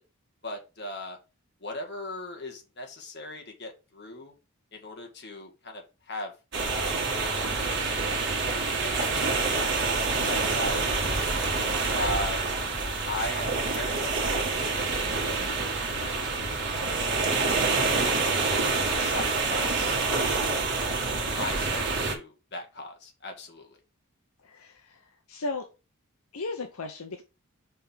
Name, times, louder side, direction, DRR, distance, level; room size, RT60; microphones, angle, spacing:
voice 1, 0.4-1.2 1.6-4.3 4.7-6.3 6.7-6.9 7.6-10.8 11.9-12.5 13.0-14.9 15.2-15.4 16.0-16.3 17.3-17.7 18.6-20.0 21.4-23.8, left 1 dB, 50° left, 3 dB, 1.7 m, -38 dB
sound 1, 6.5-22.2, right 3 dB, 50° right, 1.6 m, -27 dB
voice 2, 10.1-10.5 24.4-25.7 26.3-27.2, left 3 dB, 75° left, 5 dB, 0.8 m, -36 dB
5.4 x 3.5 x 5.6 m, 0.29 s
head